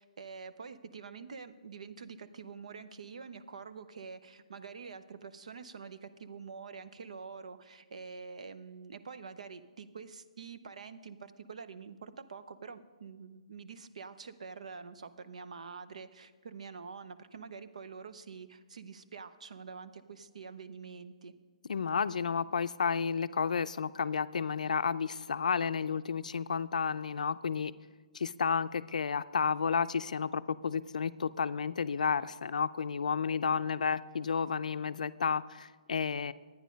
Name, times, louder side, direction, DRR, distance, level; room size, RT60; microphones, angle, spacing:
voice 1, 0.0-21.3, right 5 dB, 65° right, 11 dB, 0.7 m, -46 dB
voice 2, 21.7-27.7 28.1-36.3, left 6 dB, 80° left, 14 dB, 0.4 m, -31 dB
11.5 x 9.6 x 5.2 m, 1.4 s
hypercardioid pair, 180°, 4 cm